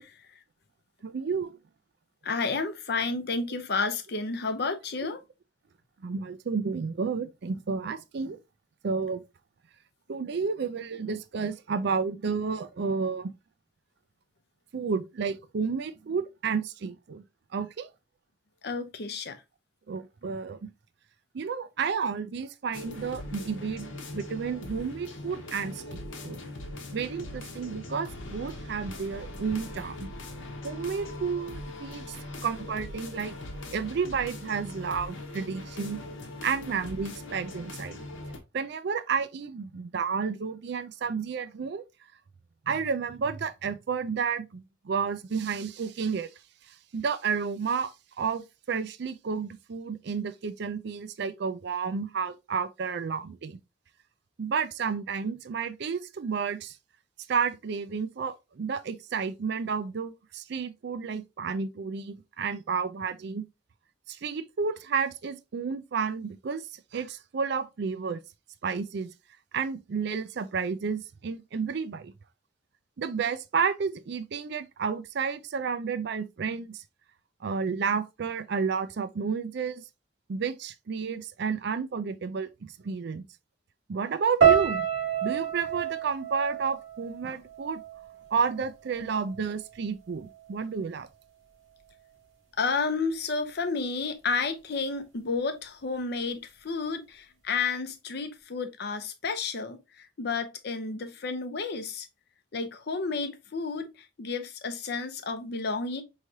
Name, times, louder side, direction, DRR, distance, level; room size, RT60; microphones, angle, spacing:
voice 1, 1.0-1.6 6.0-8.4 8.8-9.2 10.1-13.3 14.7-17.2 17.5-17.9 19.9-20.6 21.3-26.4 26.9-30.1 30.6-32.2 32.4-33.3 33.7-36.0 36.4-38.0 38.5-41.8 42.7-46.3 46.9-53.6 54.4-56.7 57.3-63.4 64.1-66.6 66.9-68.2 68.6-69.1 69.5-72.1 73.0-76.8 77.4-79.8 80.3-83.2 83.9-84.9 85.2-87.8 88.3-91.1, right 5 dB, 55° right, 0.4 m, -31 dB
voice 2, 2.2-5.2 18.6-19.4 92.6-102.1 102.5-106.0, left 4 dB, 55° left, 0.6 m, -31 dB
sound 1, 22.7-38.4, left 1 dB, 75° left, 1.0 m, -41 dB
sound 2, 84.4-88.6 88.9-89.7 90.2-90.5, right 8 dB, 85° right, 1.4 m, -28 dB
4.7 x 3.2 x 2.7 m
head